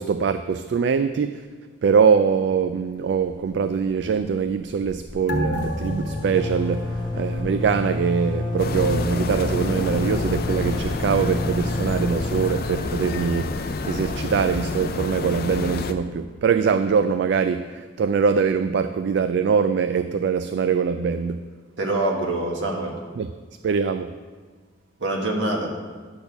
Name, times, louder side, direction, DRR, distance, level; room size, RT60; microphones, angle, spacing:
voice 1, 0.0-1.5 1.8-21.5 23.2-23.3 23.6-24.1, right 6 dB, 65° right, 10 dB, 0.3 m, -23 dB
sound 1, 3.0-3.5 3.8-3.9 4.2-14.8, left 2 dB, 25° left, 0.9 m, -30 dB
sound 2, 5.3-8.2 8.5-8.6, left 1 dB, 70° left, 1.1 m, -30 dB
sound 3, 8.6-15.9, left 3 dB, 55° left, 0.5 m, -28 dB
voice 2, 21.8-23.0 25.0-25.8, right 2 dB, 80° right, 1 dB, 1.5 m, -25 dB
10.0 x 4.3 x 6.8 m, 1.5 s
head